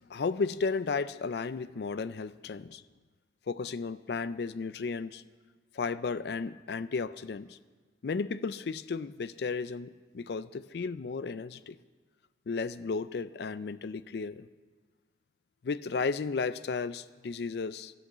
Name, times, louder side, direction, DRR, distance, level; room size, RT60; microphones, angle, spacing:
voice 1, 0.1-2.8 3.5-5.2 5.7-7.6 8.0-11.8 12.5-14.5 15.6-17.9, left 4 dB, 60° left, 0.4 m, -34 dB
13.5 x 8.5 x 7.8 m
head